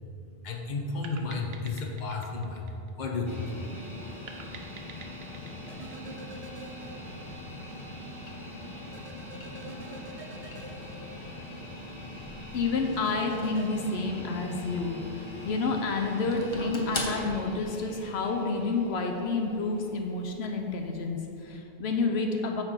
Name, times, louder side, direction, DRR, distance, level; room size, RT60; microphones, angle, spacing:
voice 1, 0.4-3.6, left 3 dB, 50° left, 1 dB, 0.9 m, -33 dB
sound 1, 1.0-3.6 4.3-6.8, right 5 dB, 70° right, 0.9 m, -49 dB
sound 2, 3.3-21.4, left 1 dB, 30° left, 1.0 m, -41 dB
sound 3, 5.7-7.4 7.7-7.8 8.9-11.7 12.9-13.7, right 3 dB, 45° right, 0.6 m, -47 dB
voice 2, 12.5-22.6, left 3 dB, 80° left, 3 dB, 0.9 m, -29 dB
9.4 x 3.3 x 6.6 m, 2.9 s
omnidirectional pair, 1.1 m